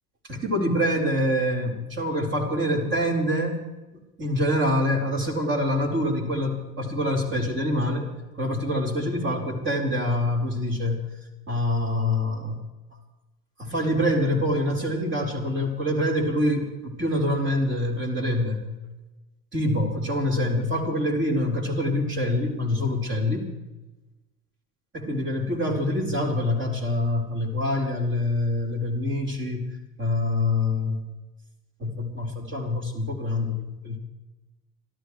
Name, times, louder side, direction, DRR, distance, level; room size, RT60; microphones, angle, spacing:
voice 1, 0.3-3.6 4.2-11.0 11.5-12.6 13.6-18.7 19.5-23.5 24.9-29.7 30.0-31.0 31.8-33.6 33.8-34.0, left 1 dB, 25° right, 0 dB, 4.2 m, -25 dB
26.5 x 14.0 x 3.2 m, 1.1 s
hypercardioid pair, 75°, 45 cm